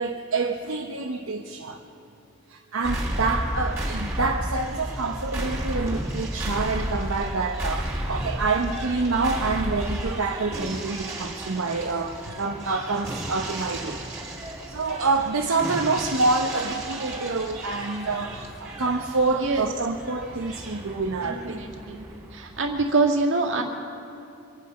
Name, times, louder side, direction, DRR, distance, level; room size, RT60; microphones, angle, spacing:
voice 1, 0.0-1.8 2.5-14.0 14.7-21.6, right 3 dB, 75° right, 2 dB, 0.9 m, -27 dB
sound 1, 2.8-22.8, right 1 dB, 15° right, 2.8 m, -33 dB
voice 2, 19.3-19.7 21.2-22.0 22.3-23.6, right 3 dB, 60° right, 1 dB, 1.9 m, -25 dB
24.5 x 9.5 x 5.6 m, 2.8 s
head